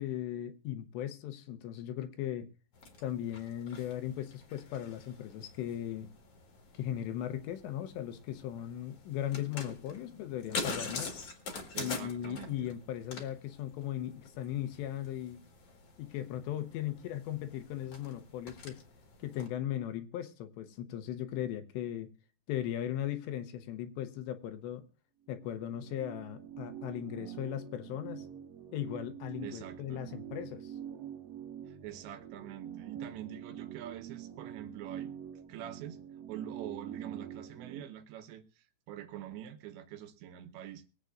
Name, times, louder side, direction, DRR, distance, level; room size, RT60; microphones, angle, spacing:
voice 1, 0.0-2.5 3.0-6.1 6.7-11.2 11.8-15.4 16.0-18.8 19.2-22.1 22.5-24.8 25.3-28.3 28.7-30.7, left 11 dB, 80° left, 3.0 m, -38 dB
sound 1, 2.7-19.5, left 4 dB, 50° left, 1.9 m, -45 dB
voice 2, 11.7-12.7 29.4-30.0 31.7-35.1 35.5-36.0 36.3-40.8, right 11 dB, 80° right, 3.2 m, -45 dB
sound 2, 25.3-37.8, right 9 dB, 65° right, 1.6 m, -45 dB
23.0 x 8.1 x 2.5 m
omnidirectional pair, 5.2 m